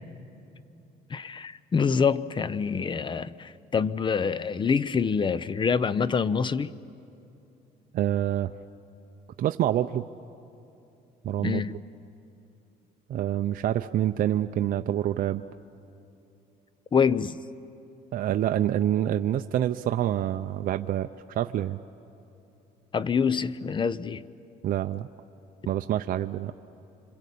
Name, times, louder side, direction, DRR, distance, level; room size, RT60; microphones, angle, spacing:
voice 1, 1.1-6.7 11.4-11.8 16.9-17.4 22.9-24.2, left 6 dB, 30° left, 0.6 m, -26 dB
voice 2, 7.9-8.5 9.4-10.1 11.2-11.8 13.1-15.4 18.1-21.8 24.6-25.1 25.7-26.5, right 11 dB, 55° right, 0.6 m, -27 dB
26.5 x 26.0 x 8.5 m
cardioid pair, 110°, 17 cm